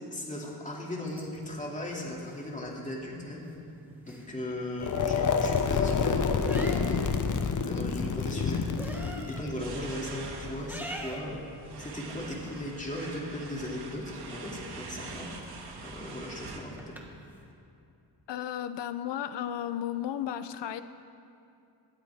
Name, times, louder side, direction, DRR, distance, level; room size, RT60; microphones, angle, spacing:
voice 1, 0.1-3.5 4.0-7.0 7.6-8.7 9.3-16.8, left 1 dB, 20° left, -3 dB, 2.5 m, -37 dB
sound 1, 1.0-17.5, right 1 dB, 5° right, 1.5 m, -48 dB
sound 2, 4.8-10.8, left 5 dB, 45° left, 0.9 m, -28 dB
sound 3, 9.6-16.6, right 4 dB, 70° right, 1.7 m, -44 dB
voice 2, 18.3-20.8, left 10 dB, 85° left, 12 dB, 0.7 m, -34 dB
18.0 x 13.5 x 3.5 m, 2.6 s
wide cardioid pair, 110°, 41 cm